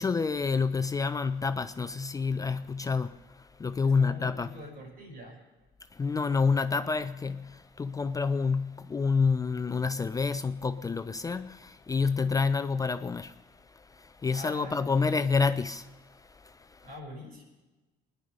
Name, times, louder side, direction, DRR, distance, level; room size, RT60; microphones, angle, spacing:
voice 1, 0.0-3.2 3.6-4.5 6.0-13.3 14.0-15.9, left 4 dB, 20° left, 0.4 m, -28 dB
voice 2, 3.8-5.4 14.3-15.3 16.8-17.4, left 1 dB, 60° right, 5.5 m, -45 dB
21.0 x 10.5 x 5.0 m
cardioid pair, 110°, 17 cm